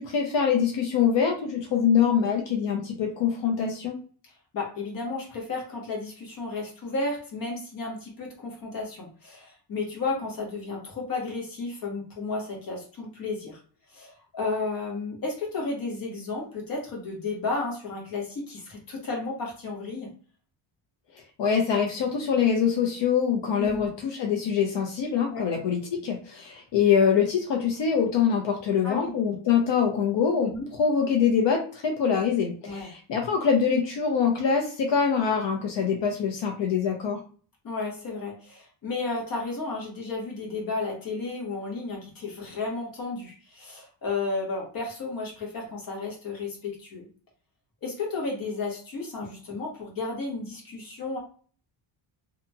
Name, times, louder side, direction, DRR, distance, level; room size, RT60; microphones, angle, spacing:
voice 1, 0.0-4.0 21.4-37.2, left 7 dB, 60° left, 1 dB, 0.6 m, -24 dB
voice 2, 4.5-13.6 13.9-20.1 23.6-23.9 25.2-25.5 28.8-29.1 30.4-30.7 32.6-32.9 37.6-47.1 47.8-51.2, left 3 dB, 45° left, -1 dB, 1.1 m, -33 dB
2.8 x 2.7 x 2.2 m, 0.41 s
wide cardioid pair, 180°, 49 cm